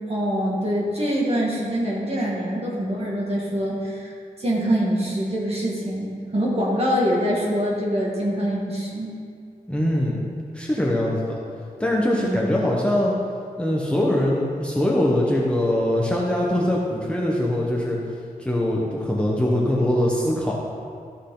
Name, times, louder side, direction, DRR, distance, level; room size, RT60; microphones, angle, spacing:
voice 1, 0.1-4.1 4.4-9.1 12.2-12.4, equal, 40° right, -5 dB, 2.1 m, -24 dB
voice 2, 9.7-10.2 10.5-11.4 11.8-13.1 13.6-18.0 18.4-20.5, left 1 dB, 5° left, -4 dB, 1.1 m, -22 dB
14.0 x 6.3 x 3.9 m, 2.3 s
wide cardioid pair, 115°, 15 cm